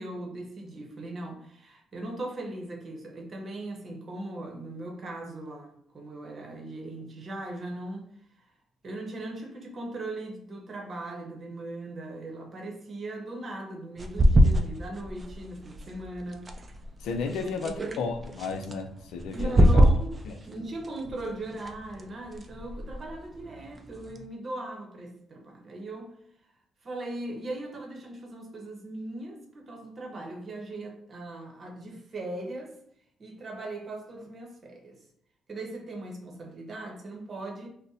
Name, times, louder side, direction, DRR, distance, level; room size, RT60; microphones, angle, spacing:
voice 1, 0.0-8.1 8.8-16.5 17.3-18.1 19.3-20.2 20.4-26.2 26.8-32.7 33.2-35.0 35.5-37.7, right 2 dB, 45° right, 0.8 m, -39 dB
sound 1, 14.0-24.3, equal, 30° right, 0.4 m, -27 dB
voice 2, 17.0-19.8 20.3-20.4, left 4 dB, 80° left, 0.4 m, -33 dB
2.6 x 2.1 x 3.9 m
cardioid pair, 90°, 0 cm